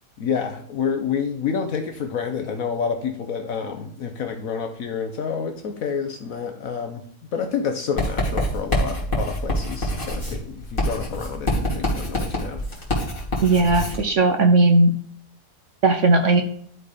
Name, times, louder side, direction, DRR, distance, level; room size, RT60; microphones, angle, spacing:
voice 1, 0.2-12.6, left 6 dB, 65° left, 5 dB, 1.2 m, -28 dB
Writing, 8.0-14.0, left 1 dB, 35° left, 2.6 m, -26 dB
voice 2, 13.4-14.9 15.8-16.4, right 2 dB, 60° right, 6 dB, 1.0 m, -17 dB
11.5 x 4.1 x 5.0 m, 0.63 s
omnidirectional pair, 1.6 m